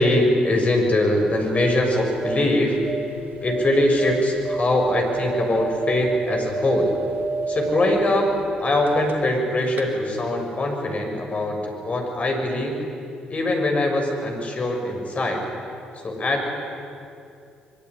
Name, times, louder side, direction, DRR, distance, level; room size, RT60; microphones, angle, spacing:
voice 1, 0.0-2.8 3.4-6.9 7.5-8.3 8.6-12.8 13.3-15.4 16.0-16.5, left 1 dB, 35° left, 2 dB, 7.2 m, -22 dB
sound 1, 1.2-9.4 9.7-9.8, right 3 dB, 55° right, 2.8 m, -30 dB
24.5 x 23.0 x 9.9 m, 2.5 s
figure-of-eight pair, 45°, 4 cm